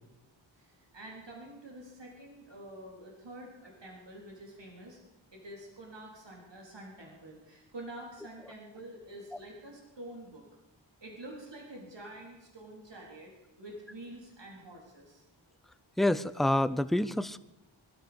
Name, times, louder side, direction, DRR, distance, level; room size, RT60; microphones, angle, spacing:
voice 1, 0.6-5.0 5.3-10.4 11.0-13.3 13.6-15.3, right 1 dB, 60° right, -1 dB, 3.8 m, -47 dB
voice 2, 16.0-17.4, left 1 dB, ahead, 14 dB, 0.5 m, -27 dB
21.0 x 13.0 x 5.2 m, 0.93 s
wide cardioid pair, 60°, 48 cm